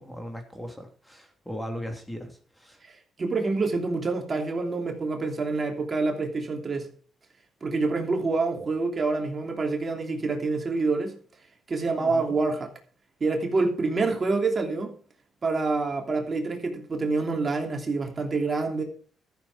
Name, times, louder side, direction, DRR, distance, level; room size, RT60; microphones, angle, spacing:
voice 1, 0.0-2.8 12.0-12.4, equal, 5° left, 3.1 m, -38 dB
voice 2, 2.8-6.9 7.6-11.2 11.7-12.7 13.2-14.9 15.4-18.8, right 3 dB, 35° right, 2.9 m, -27 dB
13.5 x 7.5 x 6.0 m
cardioid pair, 90°, 0 cm